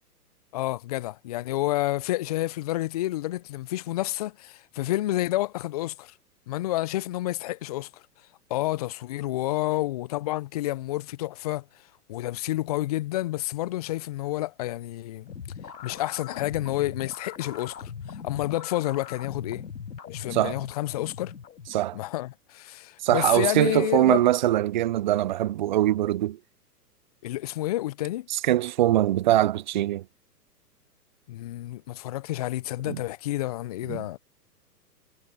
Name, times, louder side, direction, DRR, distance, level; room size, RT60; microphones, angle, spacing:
voice 1, 0.5-6.1 6.5-8.0 8.5-11.6 12.1-15.3 15.8-19.6 20.1-21.3 21.9-24.3 27.2-28.3 31.3-34.2, left 16 dB, 25° left, 0.4 m, -29 dB
sound 1, 15.3-22.0, left 7 dB, 75° left, 4.7 m, -40 dB
voice 2, 23.0-26.4 28.5-30.0 32.9-33.0 33.9-34.2, right 14 dB, 30° right, 0.4 m, -23 dB
hypercardioid pair, 120°, 49 cm